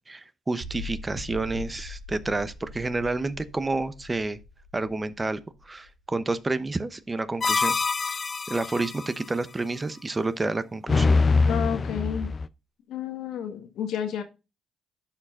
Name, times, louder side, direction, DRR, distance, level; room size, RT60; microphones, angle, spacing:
voice 1, 0.1-4.4 4.7-7.8 8.1-11.2, right 3 dB, 20° right, 0.9 m, -29 dB
sound 1, 0.6-6.7, left 2 dB, 70° right, 3.8 m, -42 dB
sound 2, 7.4-9.1 10.9-12.5, left 4 dB, 40° left, 0.5 m, -24 dB
voice 2, 11.5-12.3 12.9-14.2, left 9 dB, 80° left, 1.6 m, -31 dB
11.0 x 5.0 x 3.7 m
cardioid pair, 90°, 0 cm